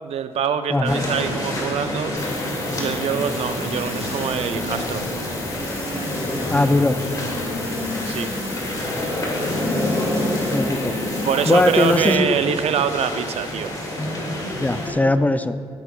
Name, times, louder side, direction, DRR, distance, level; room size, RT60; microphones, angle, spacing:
voice 1, 0.0-2.1 2.8-5.0 8.0-8.3 11.2-13.7, right 8 dB, 70° right, 10 dB, 0.5 m, -24 dB
voice 2, 0.7-1.1 6.5-7.0 10.5-11.0 11.5-12.4 14.5-15.6, left 2 dB, 15° left, 12 dB, 0.3 m, -19 dB
sound 1, 0.8-14.9, left 1 dB, 35° left, 2.2 m, -27 dB
sound 2, 2.2-12.2, left 8 dB, 65° left, 0.6 m, -39 dB
Telephone, 2.8-11.3, right 2 dB, 20° right, 0.6 m, -40 dB
14.5 x 6.8 x 2.3 m, 2.3 s
cardioid pair, 75°, 11 cm